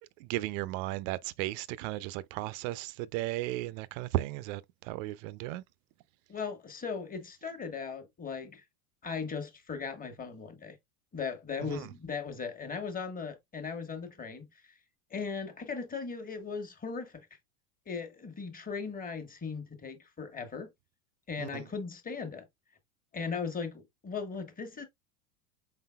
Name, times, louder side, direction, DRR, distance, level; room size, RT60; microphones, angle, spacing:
voice 1, 0.2-5.6 11.7-11.9 21.4-21.6, right 16 dB, 60° right, 0.5 m, -35 dB
voice 2, 6.3-8.6 9.0-10.8 11.1-14.5 15.1-17.3 17.9-20.7 21.3-22.4 23.1-24.8, left 5 dB, 20° left, 1.3 m, -38 dB
5.1 x 3.9 x 2.2 m
hypercardioid pair, 105°, 45 cm